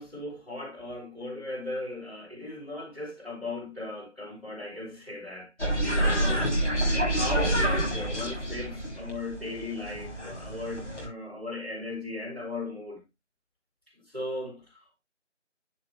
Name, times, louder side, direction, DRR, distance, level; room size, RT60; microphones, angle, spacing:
voice 1, 0.0-6.5 7.1-13.0 14.1-15.0, left 2 dB, 5° left, 5.4 m, -37 dB
sound 1, 5.6-11.1, right 1 dB, 70° left, 7.3 m, -28 dB
11.5 x 8.3 x 3.3 m
figure-of-eight pair, 165°, 37 cm